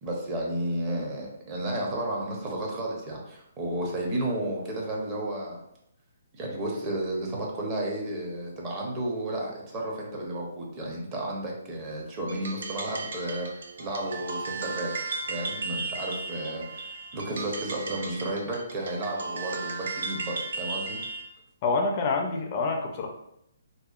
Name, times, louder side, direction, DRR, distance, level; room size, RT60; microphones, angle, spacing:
voice 1, 0.0-5.6 6.3-14.9 15.3-21.0, right 1 dB, 25° right, -2 dB, 0.6 m, -32 dB
sound 1, 12.3-21.3, right 3 dB, 70° right, 0.4 m, -35 dB
voice 2, 21.6-23.1, left 3 dB, 35° left, 2 dB, 0.3 m, -27 dB
2.7 x 2.1 x 2.3 m, 0.78 s
hypercardioid pair, 155°, 0 cm